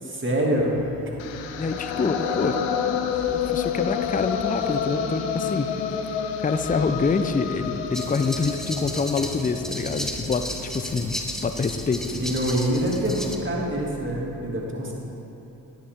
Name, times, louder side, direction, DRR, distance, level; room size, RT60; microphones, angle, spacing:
voice 1, 0.1-0.8 2.0-2.8 4.7-5.5 12.3-14.9, right 1 dB, 25° right, -2 dB, 2.4 m, -27 dB
sound 1, 0.5-14.2, right 2 dB, 60° right, 2.3 m, -45 dB
sound 2, 1.2-11.3, left 8 dB, 80° left, 0.7 m, -29 dB
voice 2, 1.6-2.6 3.3-5.7 6.4-12.1, left 4 dB, 20° left, 9 dB, 0.6 m, -26 dB
sound 3, 7.9-13.4, equal, ahead, 1.2 m, -34 dB
11.0 x 10.5 x 3.7 m, 2.9 s
hypercardioid pair, 40°, 44 cm